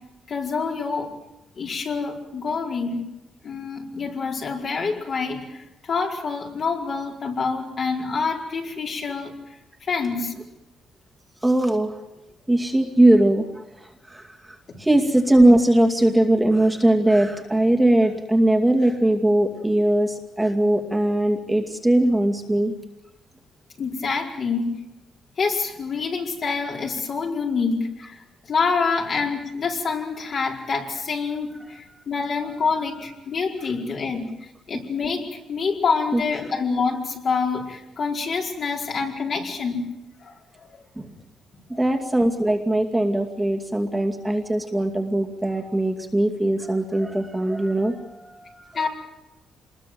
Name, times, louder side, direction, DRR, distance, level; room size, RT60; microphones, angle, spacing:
voice 1, 0.3-1.1 1.6-3.0 3.4-9.3 9.9-10.3 14.7-14.8 23.8-24.7 25.4-28.2 28.5-34.2 34.7-39.8 40.2-40.3 40.7-41.1 41.7-41.8 48.7-48.9, left 4 dB, 50° left, 0 dB, 4.9 m, -26 dB
voice 2, 11.4-12.0 12.5-13.5 14.1-14.2 14.8-22.7 31.9-32.0 36.1-36.2 41.0-41.1 41.7-48.8, right 1 dB, 10° right, 1 dB, 2.4 m, -20 dB
26.5 x 21.0 x 7.8 m, 0.98 s
cardioid pair, 115°, 0 cm